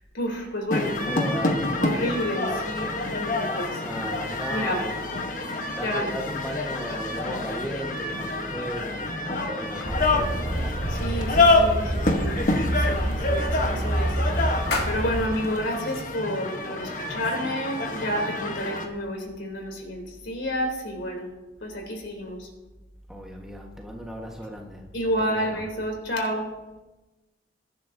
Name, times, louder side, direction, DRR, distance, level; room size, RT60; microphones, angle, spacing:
voice 1, 0.1-1.0 1.8-3.8 4.5-4.8 5.8-6.1 10.9-12.4 12.8-21.3 21.6-22.5 24.9-26.5, equal, 90° left, 1 dB, 3.4 m, -30 dB
sound 1, 0.7-18.9, left 2 dB, 45° left, 1.2 m, -27 dB
voice 2, 0.8-3.0 3.8-5.0 5.7-10.7 23.1-24.9 25.2-25.6, equal, 5° right, 0 dB, 1.4 m, -35 dB
sound 2, 9.8-15.2, right 1 dB, 50° right, 2.1 m, -28 dB
sound 3, 10.9-16.0, left 2 dB, 60° left, 2.1 m, -37 dB
22.0 x 10.0 x 2.8 m, 1.1 s
head